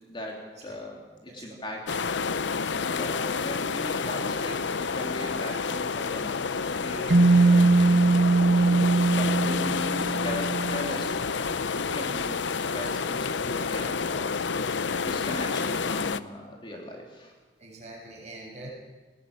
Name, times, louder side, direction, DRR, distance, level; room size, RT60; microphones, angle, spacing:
voice 1, 0.1-0.9 1.2-2.0 2.7-6.4 6.8-11.3 11.7-14.3 14.7-17.3, left 1 dB, 30° left, 0 dB, 3.3 m, -39 dB
voice 2, 1.3-1.8 2.8-2.9 17.6-18.7, right 2 dB, 40° right, -1 dB, 7.0 m, -45 dB
sound 1, 1.9-16.2, left 5 dB, 85° left, 0.7 m, -29 dB
sound 2, 7.1-10.9, right 3 dB, 65° right, 1.3 m, -21 dB
20.0 x 17.5 x 8.7 m, 1.3 s
head